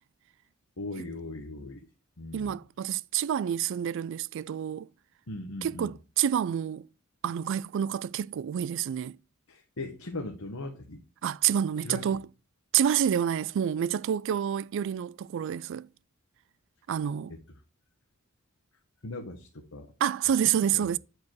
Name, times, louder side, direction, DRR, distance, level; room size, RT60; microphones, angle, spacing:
voice 1, 0.8-1.9 2.2-2.6 5.3-5.9 9.5-11.0 11.8-12.2 19.0-19.9 20.7-20.9, left 2 dB, 70° left, 1.2 m, -39 dB
voice 2, 2.3-4.9 5.6-6.9 7.2-9.2 11.2-12.3 12.7-15.9 16.9-17.3 20.0-21.0, right 9 dB, 60° right, 0.3 m, -28 dB
9.4 x 4.8 x 4.7 m
head